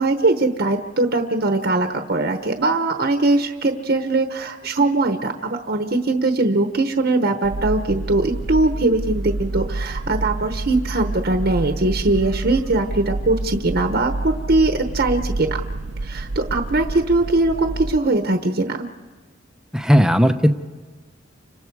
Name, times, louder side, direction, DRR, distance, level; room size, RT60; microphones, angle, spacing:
voice 1, 0.0-15.6 16.0-18.9, right 2 dB, 55° right, 6 dB, 1.1 m, -21 dB
sound 1, 7.4-18.0, right 2 dB, 75° right, 0.7 m, -28 dB
voice 2, 19.7-20.5, equal, 5° right, 8 dB, 0.8 m, -15 dB
30.0 x 26.0 x 4.8 m, 1.4 s
head